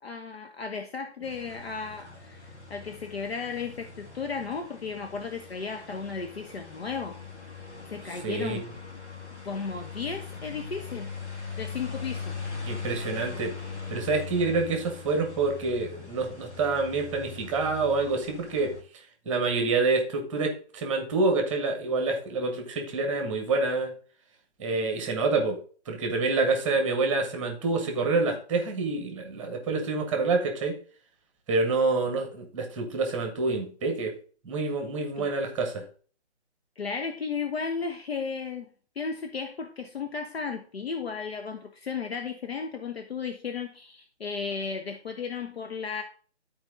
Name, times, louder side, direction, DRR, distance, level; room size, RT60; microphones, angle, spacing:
voice 1, 0.0-7.2 7.9-8.6 9.4-11.1 11.6-12.4 35.2-35.3 36.8-38.7 38.9-46.0, left 5 dB, 60° left, 5 dB, 1.3 m, -34 dB
sound 1, 1.2-18.8, left 5 dB, 85° left, 2.8 m, -41 dB
voice 2, 8.2-8.7 12.6-13.5 13.9-18.7 19.2-23.9 24.6-25.6 25.9-30.8 31.5-34.1 34.4-35.8, right 3 dB, 5° right, 3 dB, 1.1 m, -27 dB
12.5 x 4.5 x 3.6 m, 0.42 s
hypercardioid pair, 160°, 34 cm